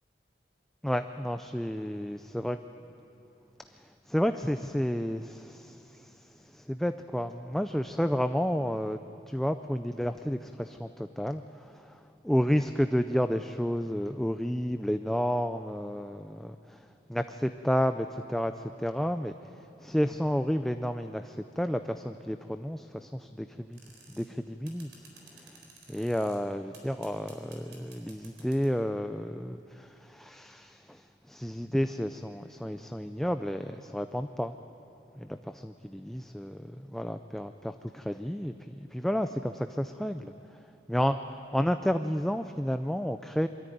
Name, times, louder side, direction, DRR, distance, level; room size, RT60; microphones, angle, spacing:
voice 1, 0.8-2.6 3.7-3.8 4.1-9.0 9.3-19.3 19.8-23.8 24.1-24.9 25.3-25.6 25.9-34.5 35.2-40.3 40.9-43.5, equal, ahead, 8 dB, 0.4 m, -31 dB
sound 1, 23.7-24.3 24.7-26.4 26.7-28.8, right 4 dB, 85° right, 4.1 m, -53 dB
24.0 x 14.0 x 9.2 m, 2.9 s
head